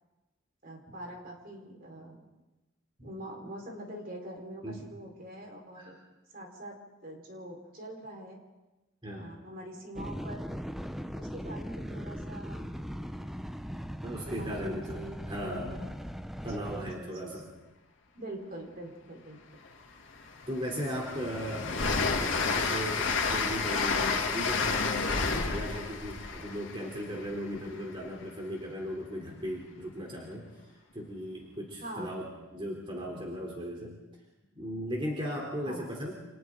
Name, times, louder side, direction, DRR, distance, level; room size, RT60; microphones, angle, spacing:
voice 1, 0.6-2.2 3.0-6.0 6.3-8.4 9.0-10.5 11.1-13.4 14.2-15.8 16.5-17.5 18.1-19.4 21.2-21.5 31.8-32.1 33.0-33.1 35.6-35.9, right 1 dB, 45° right, 0 dB, 4.7 m, -44 dB
sound 1, 9.9-16.9, equal, ahead, 0.7 m, -39 dB
voice 2, 14.0-15.0 15.3-15.8 16.4-17.5 20.5-21.8 22.2-30.5 30.9-33.9 34.5-36.1, equal, 25° right, -1 dB, 3.4 m, -37 dB
Train, 19.6-19.7 20.2-27.9, left 4 dB, 65° left, 2.7 m, -31 dB
29.5 x 27.5 x 3.9 m, 1.1 s
head